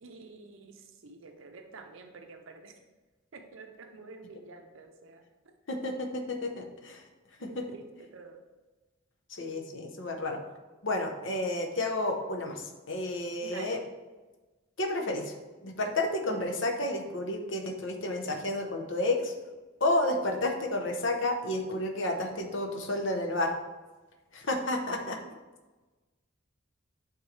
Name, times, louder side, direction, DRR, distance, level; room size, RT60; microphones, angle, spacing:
voice 1, 0.0-2.7 3.3-5.2 7.4-8.4 13.4-13.8 20.4-20.5, right 3 dB, 70° right, 4 dB, 0.6 m, -48 dB
voice 2, 5.7-7.0 7.4-7.6 9.4-10.4 10.8-13.8 14.8-15.3 15.6-19.3 19.8-23.5 24.3-25.2, left 2 dB, 65° left, 3 dB, 0.8 m, -31 dB
9.3 x 3.6 x 3.2 m, 1.2 s
head